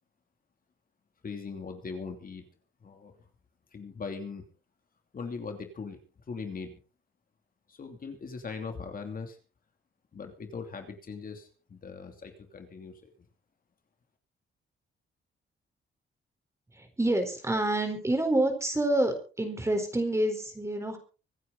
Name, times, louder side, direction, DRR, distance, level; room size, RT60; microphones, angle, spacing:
voice 1, 1.2-2.4 2.8-3.1 3.7-4.4 5.1-6.0 6.3-6.7 7.7-9.4 10.1-13.1, left 5 dB, 45° left, 5 dB, 2.9 m, -40 dB
voice 2, 16.7-21.0, right 1 dB, 15° right, 5 dB, 4.2 m, -28 dB
25.0 x 9.7 x 4.0 m, 0.36 s
cardioid pair, 125°, 21 cm